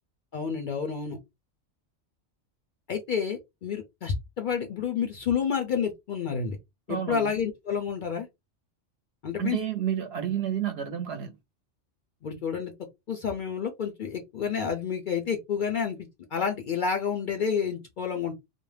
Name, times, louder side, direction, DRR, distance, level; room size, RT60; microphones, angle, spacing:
voice 1, 0.3-1.2 2.9-6.6 6.9-8.3 9.2-9.6 12.2-12.7 13.1-16.0 16.3-18.3, left 6 dB, 60° left, 0.5 m, -29 dB
voice 2, 6.9-7.3 9.4-11.3, right 9 dB, 65° right, 0.8 m, -30 dB
2.5 x 2.0 x 3.1 m
omnidirectional pair, 1.2 m